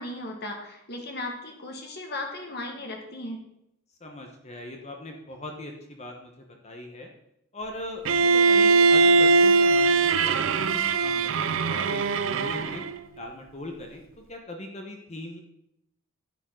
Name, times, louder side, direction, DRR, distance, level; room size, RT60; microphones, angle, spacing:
voice 1, 0.0-3.4, left 1 dB, 50° left, 2 dB, 1.8 m, -36 dB
voice 2, 4.0-7.1 7.5-12.8 13.2-15.4, left 1 dB, 30° left, 3 dB, 1.1 m, -40 dB
Bowed string instrument, 8.0-13.0, right 4 dB, 70° right, 0.5 m, -21 dB
10.0 x 9.1 x 3.8 m, 0.79 s
head